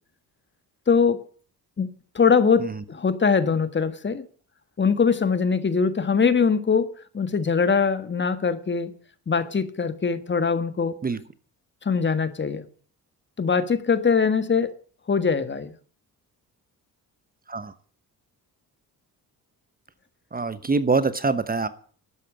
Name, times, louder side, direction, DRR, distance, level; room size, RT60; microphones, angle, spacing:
voice 1, 0.9-1.2 1.8-4.2 4.8-8.9 9.3-11.0 11.8-12.7 13.4-14.7 15.1-15.7, left 5 dB, 30° left, 1.6 m, -22 dB
voice 2, 20.3-21.7, right 4 dB, 25° right, 1.0 m, -24 dB
12.5 x 9.1 x 8.9 m
cardioid pair, 100°, 37 cm